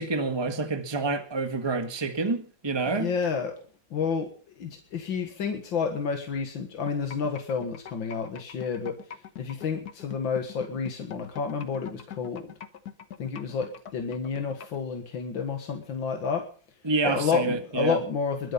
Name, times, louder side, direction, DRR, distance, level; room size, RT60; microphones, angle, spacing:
voice 1, 0.0-3.1 16.8-18.0, right 3 dB, 15° right, 1.6 m, -28 dB
voice 2, 2.9-3.5 3.9-4.3 4.6-9.0 9.4-12.5 13.2-16.4 17.0-18.5, left 6 dB, 90° left, 2.4 m, -30 dB
sound 1, 6.9-14.8, left 8 dB, 60° left, 1.7 m, -42 dB
21.5 x 10.5 x 5.6 m
omnidirectional pair, 2.0 m